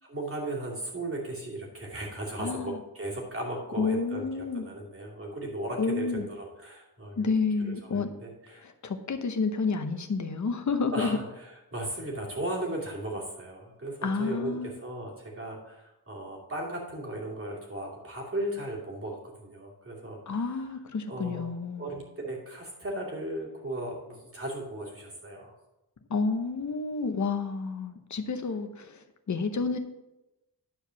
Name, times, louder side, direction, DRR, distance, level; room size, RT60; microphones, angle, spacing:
voice 1, 0.0-7.3 7.7-8.7 10.9-20.8 21.1-21.5 21.8-25.5, right 1 dB, 35° right, -3 dB, 2.6 m, -36 dB
voice 2, 2.4-2.8 3.8-4.7 5.8-6.3 7.2-8.1 8.6-11.1 14.0-14.7 20.3-21.9 26.1-29.8, left 4 dB, 50° left, 7 dB, 0.9 m, -30 dB
10.5 x 4.7 x 6.9 m, 0.96 s
wide cardioid pair, 160°, 38 cm